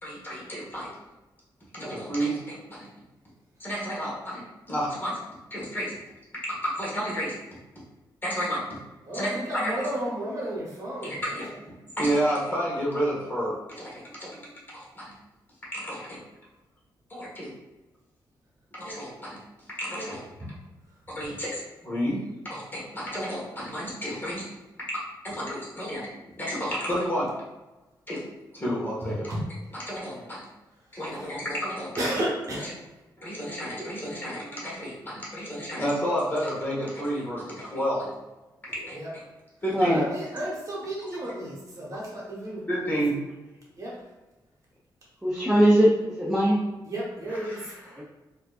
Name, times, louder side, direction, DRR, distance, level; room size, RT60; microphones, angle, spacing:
voice 1, 0.0-0.9 1.7-2.9 3.6-5.2 5.5-6.0 6.4-7.4 8.2-8.8 9.1-9.9 11.0-11.5 12.0-13.9 14.2-14.3 14.7-15.1 15.7-16.2 17.1-17.5 18.7-19.4 19.8-20.2 21.1-24.4 24.9-26.1 26.4-27.5 28.1-28.2 28.5-29.4 29.7-30.4 30.9-31.9 32.6-32.7 33.2-38.1 38.7-38.9 39.6-40.0 41.9-42.0 42.7-43.2 47.3-48.0, equal, 25° left, -6 dB, 1.2 m, -31 dB
voice 2, 9.0-11.1 29.3-29.4 30.1-30.2 31.1-31.3 32.0-32.7 38.9-39.1 39.9-43.0 43.8-44.0 46.8-48.0, right 1 dB, 40° right, -4 dB, 1.1 m, -33 dB
voice 3, 45.2-46.6 48.0-48.1, equal, 5° right, -5 dB, 0.6 m, -20 dB
4.3 x 2.7 x 2.4 m, 1.1 s
wide cardioid pair, 125°, 8 cm